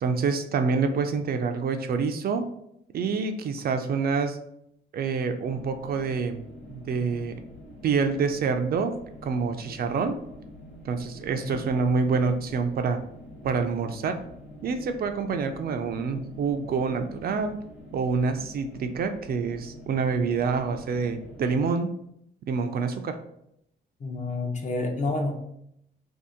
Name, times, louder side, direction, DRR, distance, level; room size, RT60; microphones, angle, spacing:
voice 1, 0.0-2.5 2.9-4.4 4.9-6.4 6.7-7.4 7.8-8.9 9.2-10.1 10.8-13.0 13.4-14.2 14.6-17.6 17.9-21.9 22.5-23.2, right 5 dB, 50° right, 6 dB, 0.4 m, -27 dB
sound 1, 5.4-21.7, left 1 dB, 80° left, 1.2 m, -46 dB
voice 2, 24.0-25.4, left 2 dB, 35° left, 3 dB, 0.6 m, -29 dB
2.7 x 2.4 x 3.5 m, 0.75 s
cardioid pair, 90°, 20 cm